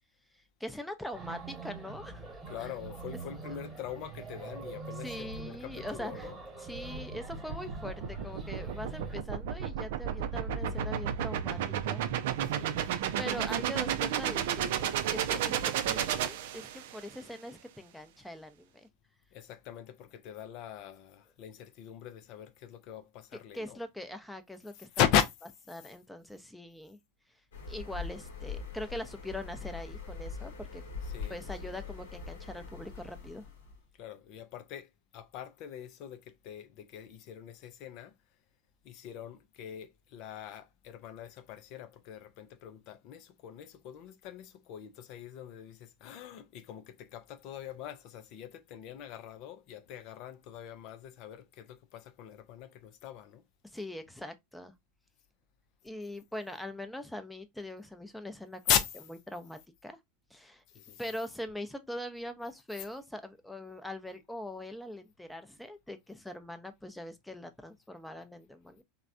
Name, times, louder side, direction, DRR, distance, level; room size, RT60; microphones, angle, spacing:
voice 1, 0.6-2.2 3.5-3.6 5.0-6.3 6.6-12.0 13.2-15.6 15.8-18.9 23.5-24.9 25.7-27.0 27.7-30.8 31.3-33.4 53.7-54.7 55.8-58.6 59.3-60.0 60.3-60.6 61.0-68.8, left 1 dB, 5° left, 0.6 m, -42 dB
sound 1, 1.1-9.2, right 3 dB, 20° right, 1.3 m, -44 dB
voice 2, 2.5-6.4 12.4-13.5 19.3-23.8 24.7-25.2 31.0-31.4 34.0-38.1 38.8-53.4 58.7-58.9 60.7-61.0 62.8-62.9, left 9 dB, 55° left, 0.4 m, -38 dB
sound 2, 6.7-17.1, right 9 dB, 65° right, 0.4 m, -32 dB
sound 3, 27.5-33.8, left 5 dB, 70° left, 0.8 m, -42 dB
3.2 x 2.1 x 2.5 m
hypercardioid pair, 90°, 0 cm